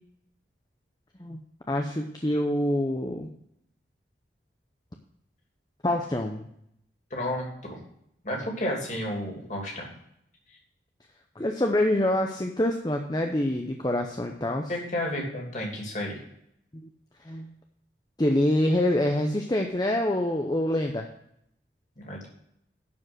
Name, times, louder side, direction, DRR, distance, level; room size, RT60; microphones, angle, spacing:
voice 1, 1.7-3.3 5.8-6.5 11.4-14.7 17.2-17.5 18.2-21.1, left 1 dB, 20° left, 3 dB, 0.7 m, -26 dB
voice 2, 7.1-7.8 8.2-9.9 14.7-16.2 22.0-22.3, left 1 dB, 40° left, -1 dB, 2.8 m, -32 dB
11.5 x 5.2 x 6.1 m, 0.74 s
head